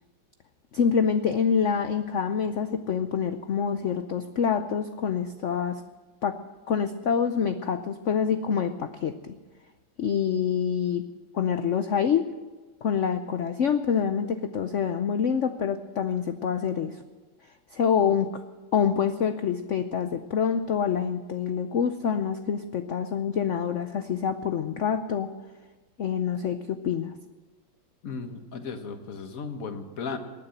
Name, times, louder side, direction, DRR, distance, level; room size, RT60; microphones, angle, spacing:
voice 1, 0.7-5.8 6.2-6.4 6.7-9.3 10.0-11.0 11.3-12.3 12.8-17.0 17.7-18.4 18.7-25.3 26.0-27.1, left 7 dB, 85° left, 9 dB, 0.6 m, -26 dB
voice 2, 28.0-30.2, left 5 dB, 50° left, 7 dB, 1.6 m, -35 dB
19.0 x 9.8 x 7.7 m, 1.3 s
omnidirectional pair, 2.1 m